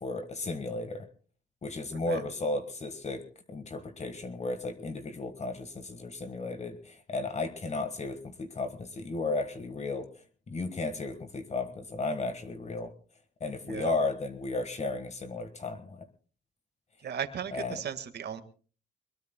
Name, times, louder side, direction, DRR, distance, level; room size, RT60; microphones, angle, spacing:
voice 1, 0.0-1.1 1.6-10.1 10.5-12.9 13.4-16.0 17.5-17.8, left 3 dB, 35° left, 8 dB, 1.5 m, -34 dB
voice 2, 17.0-18.4, right 8 dB, 55° right, 10 dB, 1.7 m, -36 dB
23.5 x 21.0 x 2.2 m, 0.39 s
cardioid pair, 90°, 20 cm